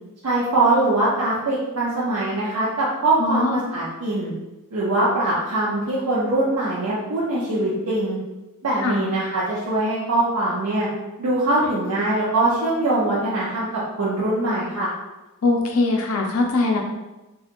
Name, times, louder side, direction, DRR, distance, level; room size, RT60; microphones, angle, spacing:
voice 1, 0.2-4.3 4.7-8.2 8.6-10.9 11.2-14.9, right 2 dB, 80° right, -8 dB, 0.6 m, -22 dB
voice 2, 3.2-3.6 8.8-9.0 15.4-16.8, left 3 dB, 70° left, 1 dB, 0.4 m, -21 dB
2.9 x 2.4 x 2.5 m, 1.0 s
head